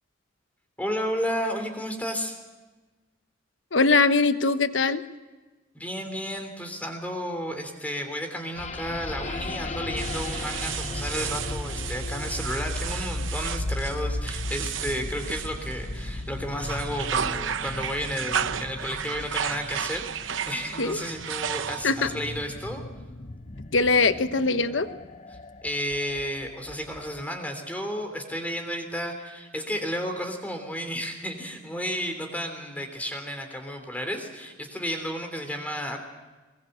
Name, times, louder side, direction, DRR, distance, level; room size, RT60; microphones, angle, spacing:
voice 1, 0.8-2.4 5.7-22.8 25.3-36.0, equal, 10° left, 4 dB, 3.2 m, -32 dB
voice 2, 3.7-5.0 20.8-21.0 21.8-22.1 23.7-24.9, left 4 dB, 75° left, 10 dB, 1.2 m, -21 dB
sound 1, 8.6-27.2, left 2 dB, 35° left, 0.8 m, -36 dB
sound 2, 10.0-16.1 16.5-22.1, right 8 dB, 80° right, 0.9 m, -33 dB
22.0 x 22.0 x 8.0 m, 1.2 s
head